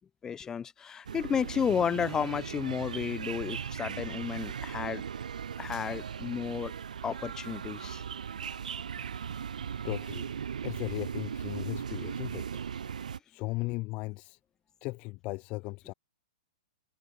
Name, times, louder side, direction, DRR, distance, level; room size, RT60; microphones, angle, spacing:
voice 1, 0.2-5.0 5.6-6.7 7.0-8.0, left 7 dB, 15° left, 1.9 m, -32 dB
sound 1, 1.1-13.2, right 7 dB, 90° right, 2.2 m, -38 dB
voice 2, 9.8-10.3 10.6-12.5 13.3-14.4 14.8-15.9, left 23 dB, 35° left, 0.7 m, -37 dB
hypercardioid pair, 145°, 4 cm